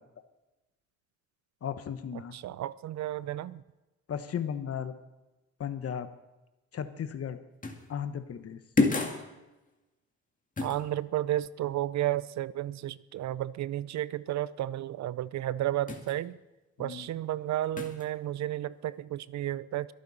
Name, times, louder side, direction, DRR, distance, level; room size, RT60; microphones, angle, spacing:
voice 1, 1.6-2.3 4.1-4.9 5.6-6.1 6.7-7.4 7.9-8.6 16.8-17.1, left 8 dB, 50° left, 10 dB, 1.2 m, -35 dB
voice 2, 2.3-3.6 10.6-16.4 16.8-19.9, right 13 dB, 65° right, 18 dB, 0.6 m, -32 dB
sound 1, 7.6-7.9 8.8-9.3 10.6-10.8 15.9-16.1 17.8-18.0, left 3 dB, 25° left, 2.1 m, -28 dB
23.0 x 9.3 x 4.2 m, 1.1 s
cardioid pair, 90°, 30 cm